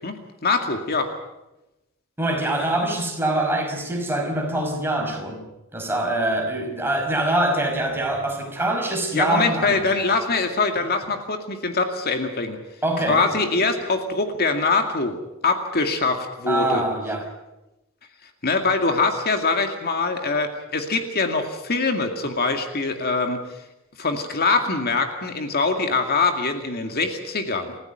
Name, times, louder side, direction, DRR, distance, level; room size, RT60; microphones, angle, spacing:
voice 1, 0.4-1.1 9.1-12.6 13.1-15.2 15.4-16.8 18.4-23.4 24.0-27.8, left 3 dB, 50° left, 2.3 m, -23 dB
voice 2, 2.2-5.4 5.7-9.9 12.8-13.2 16.5-17.3, right 1 dB, 10° right, 5.1 m, -24 dB
28.5 x 15.5 x 9.3 m
head